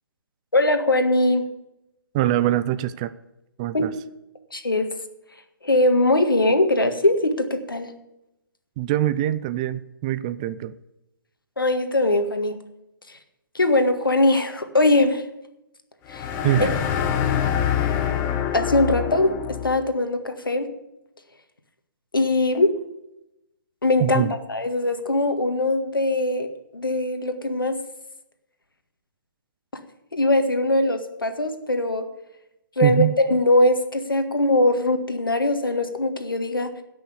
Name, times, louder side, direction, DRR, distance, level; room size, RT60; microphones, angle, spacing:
voice 1, 0.5-1.5 3.7-3.9 4.5-4.9 5.6-7.9 11.6-12.6 13.5-15.2 16.1-16.3 16.6-16.7 18.5-19.3 19.6-20.7 22.1-22.7 23.8-24.2 24.5-26.5 26.7-27.8 30.1-32.0 32.8-36.7, left 2 dB, 75° left, 7 dB, 1.8 m, -21 dB
voice 2, 2.1-3.1 3.6-3.9 8.8-10.7 16.4-16.7 24.0-24.3 32.8-33.1, right 13 dB, 20° right, 14 dB, 0.4 m, -23 dB
sound 1, 16.1-19.8, left 9 dB, 20° left, 1.0 m, -25 dB
17.0 x 6.4 x 6.8 m, 0.89 s
figure-of-eight pair, 135°, 12 cm